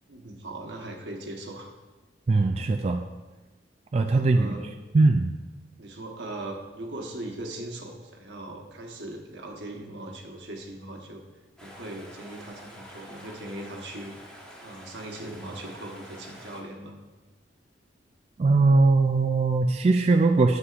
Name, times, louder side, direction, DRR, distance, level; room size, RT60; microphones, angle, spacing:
voice 1, 0.1-1.7 4.0-4.9 5.8-11.2 11.6-14.3 14.6-17.0, right 1 dB, 75° right, 1 dB, 1.2 m, -39 dB
voice 2, 2.3-3.0 3.9-4.5 4.9-5.3 18.4-20.6, right 3 dB, 35° right, 4 dB, 0.3 m, -20 dB
sound 1, 11.6-16.6, equal, 5° left, 1.2 m, -47 dB
9.7 x 7.7 x 2.5 m, 1.2 s
head